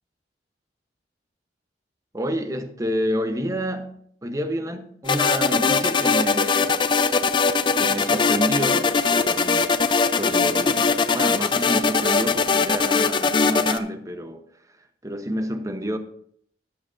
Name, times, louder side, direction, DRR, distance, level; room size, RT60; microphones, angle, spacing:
voice 1, 2.1-6.8 7.8-9.8 10.1-14.4 15.0-16.0, equal, 20° right, 0.8 m, -29 dB
sound 1, 5.1-13.8, left 4 dB, 25° left, 0.5 m, -21 dB
13.0 x 11.5 x 2.6 m
head